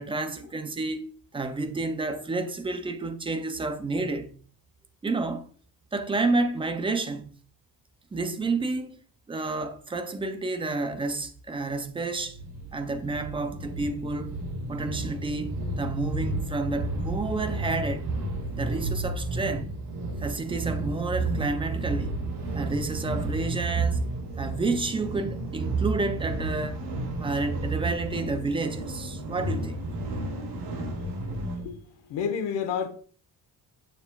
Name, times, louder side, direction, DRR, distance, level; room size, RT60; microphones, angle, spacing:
voice 1, 0.0-4.4 5.0-5.5 5.9-7.3 8.1-9.0 9.3-12.4 12.7-14.4 14.7-18.1 18.5-19.8 20.2-22.2 22.5-24.0 24.4-26.8 27.2-29.8, right 3 dB, 15° right, 0.4 m, -30 dB
sound 1, 12.2-31.6, right 2 dB, 85° right, 2.8 m, -32 dB
voice 2, 31.6-32.9, left 7 dB, 90° left, 1.2 m, -30 dB
6.9 x 6.9 x 2.3 m
cardioid pair, 170°, 41 cm